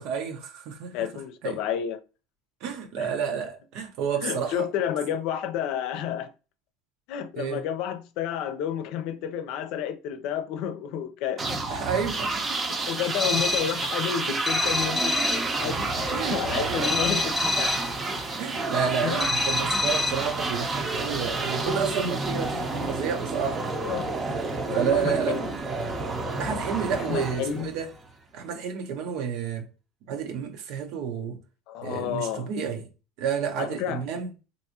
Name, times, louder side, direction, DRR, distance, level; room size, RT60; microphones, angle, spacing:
voice 1, 0.0-1.1 1.4-1.6 2.6-4.7 7.4-7.6 11.7-12.7 16.1-17.0 18.4-23.6 24.3-25.4 26.4-27.9 28.3-29.7 30.1-31.4 31.8-32.9 33.2-34.3, right 7 dB, 65° right, 0.7 m, -30 dB
voice 2, 0.9-2.0 3.0-3.2 4.2-6.3 7.1-11.6 12.6-15.9 16.3-17.7 19.0-19.3 23.8-24.2 24.6-25.5 26.9-27.7 31.7-32.5 33.6-34.0, left 9 dB, 65° left, 0.6 m, -31 dB
sound 1, 11.4-28.1, right 3 dB, 25° right, 0.7 m, -30 dB
sound 2, 13.2-13.8 14.5-15.5 16.8-17.9 19.2-20.3, left 3 dB, 15° left, 0.6 m, -27 dB
3.5 x 2.6 x 2.8 m
supercardioid pair, 125°, 0 cm